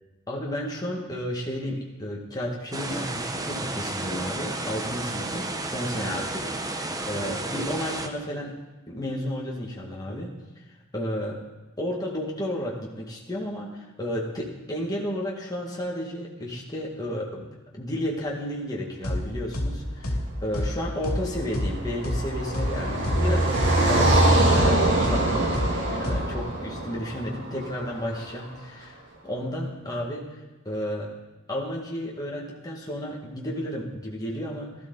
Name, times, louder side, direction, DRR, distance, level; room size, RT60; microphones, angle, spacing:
voice 1, 0.3-8.6 8.9-10.3 10.9-11.4 11.8-17.4 17.7-25.6 25.9-30.4 30.7-31.1 31.5-34.8, equal, 20° left, -3 dB, 1.9 m, -32 dB
sound 1, 2.7-8.1, right 2 dB, 15° right, 0.9 m, -32 dB
sound 2, 19.0-19.2 19.5-19.7 20.0-20.2 20.5-20.7 21.0-21.2 21.5-21.7 22.0-22.2 22.5-22.7 23.0-23.2 23.5-23.7 24.0-24.2 24.5-24.7 25.0-25.2 25.5-25.7 26.0-26.2, left 1 dB, 75° left, 2.5 m, -27 dB
Car passing by, 21.0-28.2, right 1 dB, 60° right, 3.0 m, -24 dB
16.5 x 13.0 x 4.0 m, 1.1 s
head